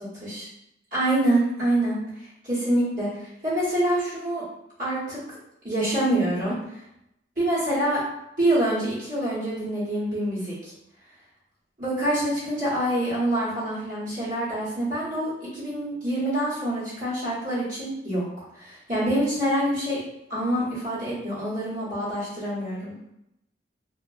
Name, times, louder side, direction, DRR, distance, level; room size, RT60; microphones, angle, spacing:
voice 1, 0.9-2.0 2.4-4.4 4.8-5.2 5.6-6.6 7.4-8.0 8.4-10.7 11.8-18.2 18.5-20.0 20.3-22.9, right 1 dB, 45° right, -11 dB, 1.3 m, -26 dB
2.9 x 2.4 x 2.5 m, 0.85 s
head